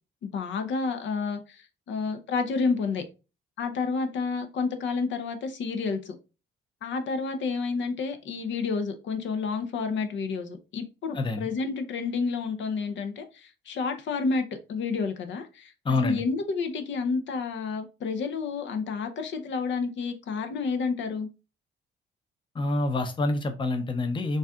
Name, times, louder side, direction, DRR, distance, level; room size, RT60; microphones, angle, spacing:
voice 1, 0.2-3.0 3.6-6.1 6.8-14.4 14.7-15.7 16.0-21.3, left 4 dB, 70° left, 0.7 m, -30 dB
voice 2, 11.1-11.5 15.8-16.2 22.5-24.4, left 2 dB, 25° left, 0.6 m, -27 dB
4.0 x 2.4 x 3.5 m
cardioid pair, 90°, 20 cm